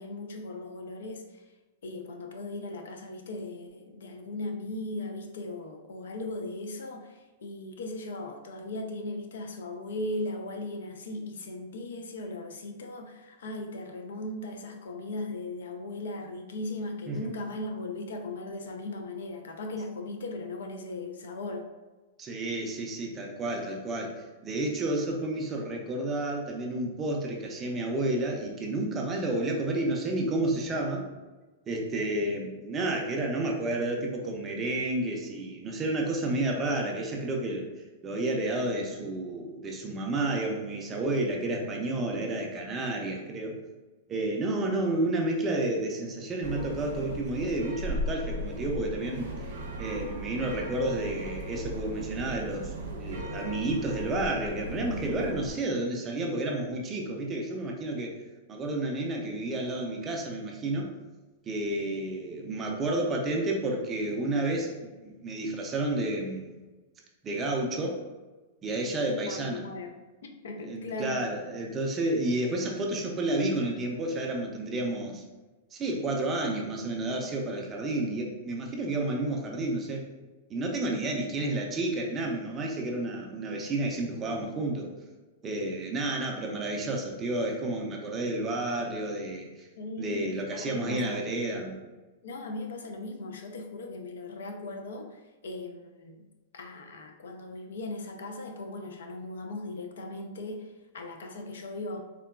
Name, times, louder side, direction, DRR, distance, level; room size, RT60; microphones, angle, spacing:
voice 1, 0.0-1.4 1.8-21.7 69.1-70.0 70.2-71.2 89.8-91.2 92.2-96.3 96.5-102.0, left 2 dB, 85° left, 4 dB, 0.4 m, -38 dB
voice 2, 22.2-24.1 24.4-31.0 31.7-37.7 38.0-43.6 44.1-49.5 49.8-58.1 58.5-60.9 61.5-66.6 67.2-68.0 68.6-69.7 70.6-75.2 75.7-80.1 80.5-84.9 85.4-89.7 90.0-91.8, right 2 dB, 15° right, 0 dB, 0.3 m, -31 dB
sound 1, 46.4-55.5, right 1 dB, 75° right, 0.6 m, -37 dB
3.7 x 2.2 x 2.2 m, 1.2 s
supercardioid pair, 175°, 0 cm